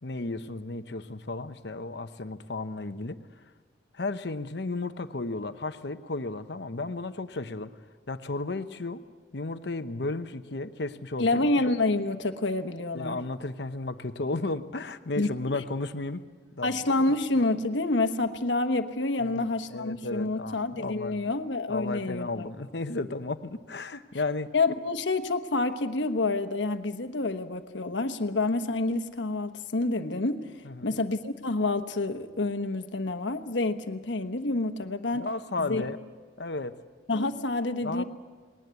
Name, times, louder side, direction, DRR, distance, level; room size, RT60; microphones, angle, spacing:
voice 1, 0.0-3.2 3.9-7.7 8.1-9.0 9.3-11.5 12.9-16.2 16.5-16.9 19.2-19.5 19.7-21.2 21.7-24.5 30.6-31.0 35.1-36.0 36.4-36.8 37.8-38.0, left 3 dB, 65° left, 10 dB, 0.9 m, -34 dB
voice 2, 11.2-13.2 15.2-15.6 16.6-22.4 24.5-30.5 30.8-35.3 35.6-35.8 37.1-38.0, left 2 dB, 80° left, 9 dB, 1.2 m, -28 dB
20.5 x 18.5 x 8.3 m, 1.4 s
head